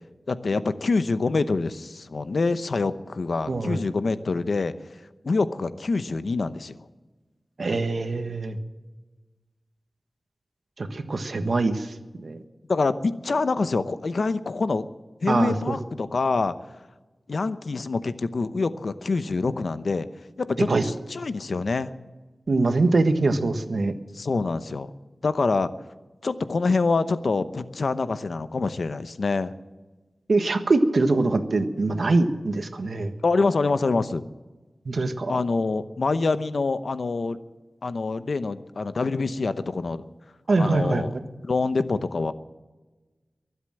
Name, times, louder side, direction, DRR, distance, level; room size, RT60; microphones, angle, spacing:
voice 1, 0.3-4.7 5.2-6.8 12.7-14.8 15.2-16.5 17.3-20.1 20.4-21.9 24.1-24.9 25.2-25.7 26.2-29.5 33.2-34.2 35.3-37.4 37.8-40.0 40.6-41.1 41.4-42.3, left 3 dB, 80° left, 12 dB, 0.8 m, -25 dB
voice 2, 3.5-3.8 7.6-8.6 10.8-11.9 12.2-12.4 15.3-15.8 20.7-20.8 22.5-23.9 30.3-33.1 34.8-35.3 40.5-41.2, right 3 dB, 75° right, 8 dB, 1.4 m, -23 dB
23.5 x 8.2 x 7.6 m, 1.2 s
wide cardioid pair, 60°, 0 cm